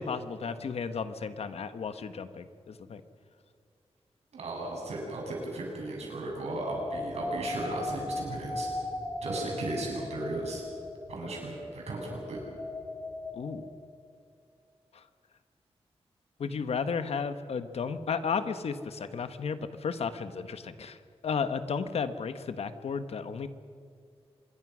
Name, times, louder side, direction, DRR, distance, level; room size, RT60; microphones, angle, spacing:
voice 1, 0.0-3.0 13.4-13.7 16.4-21.0 21.2-23.5, left 5 dB, 75° left, 10 dB, 1.3 m, -33 dB
voice 2, 4.3-8.7 9.2-10.6 11.1-12.4, right 2 dB, 85° right, -1 dB, 7.8 m, -36 dB
sound 1, 6.6-13.9, left 2 dB, 15° left, 3.8 m, -38 dB
26.0 x 22.5 x 6.3 m, 2.4 s
wide cardioid pair, 170°, 11 cm